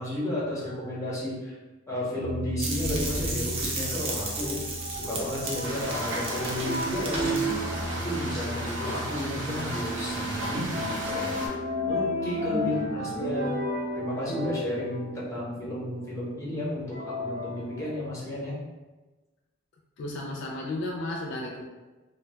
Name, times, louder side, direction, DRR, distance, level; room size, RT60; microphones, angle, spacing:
voice 1, 0.0-1.5 1.9-4.6 4.9-7.6 7.9-11.4 11.9-13.5 13.9-18.5, left 1 dB, 15° left, -6 dB, 0.8 m, -32 dB
sound 1, 2.2-16.3 16.9-18.0, left 1 dB, 45° right, 1.1 m, -34 dB
sound 2, 2.6-7.5, right 2 dB, 30° right, 0.4 m, -34 dB
sound 3, 5.6-11.5, right 1 dB, 70° right, 0.6 m, -34 dB
voice 2, 12.6-13.3 20.0-21.6, left 2 dB, 60° left, -1 dB, 0.4 m, -34 dB
2.2 x 2.2 x 3.2 m, 1.2 s
head